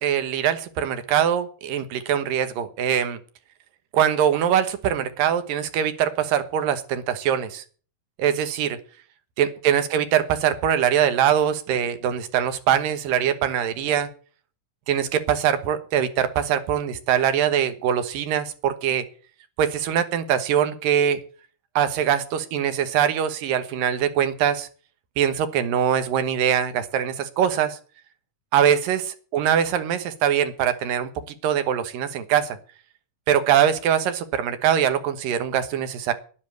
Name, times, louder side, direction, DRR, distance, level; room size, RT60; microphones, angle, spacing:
voice 1, 0.0-3.2 3.9-7.6 8.2-8.8 9.4-14.1 14.9-19.0 19.6-21.2 21.8-24.7 25.2-27.8 28.5-29.0 29.3-31.1 31.4-32.6 33.3-36.1, right 9 dB, 85° right, 10 dB, 2.9 m, -22 dB
10.5 x 10.0 x 9.2 m, 0.42 s
omnidirectional pair, 3.9 m